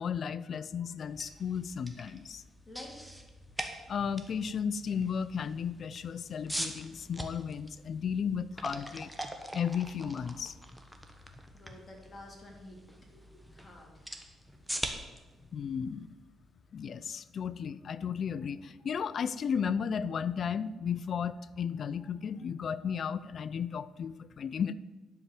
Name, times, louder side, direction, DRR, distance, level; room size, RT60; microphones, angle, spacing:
voice 1, 0.0-2.4 3.9-9.1 9.5-10.6 15.5-16.1 16.7-24.7, left 7 dB, 55° left, 16 dB, 0.4 m, -34 dB
sound 1, 1.0-16.9, right 1 dB, 5° right, 1.1 m, -44 dB
voice 2, 2.6-3.1 11.5-14.1 14.5-14.6, left 1 dB, 30° left, -1 dB, 3.0 m, -51 dB
11.0 x 4.7 x 7.6 m, 1.2 s
cardioid pair, 90°, 0 cm